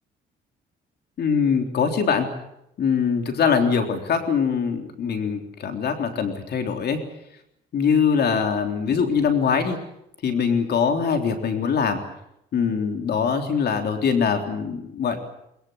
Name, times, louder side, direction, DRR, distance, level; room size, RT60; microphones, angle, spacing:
voice 1, 1.2-2.3 2.8-7.0 7.7-9.8 10.2-12.0 12.5-15.2, left 6 dB, 60° left, 5 dB, 3.7 m, -22 dB
22.5 x 22.0 x 8.1 m, 0.81 s
cardioid pair, 105°, 19 cm